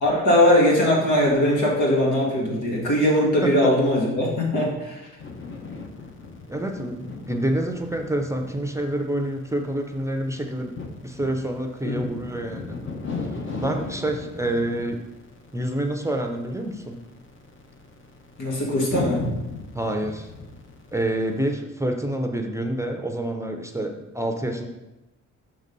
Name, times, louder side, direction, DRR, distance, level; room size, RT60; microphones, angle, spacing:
voice 1, 0.0-5.0 11.8-12.0 18.4-19.3, left 1 dB, 80° left, -3 dB, 2.2 m, -20 dB
sound 1, 5.2-21.5, left 4 dB, 40° left, 1.0 m, -37 dB
voice 2, 6.5-10.7 11.0-12.8 13.6-15.0 15.5-17.0 19.7-20.3 20.9-24.7, right 1 dB, 10° right, 4 dB, 0.6 m, -27 dB
6.0 x 4.0 x 5.3 m, 1.0 s
cardioid pair, 90°, 30 cm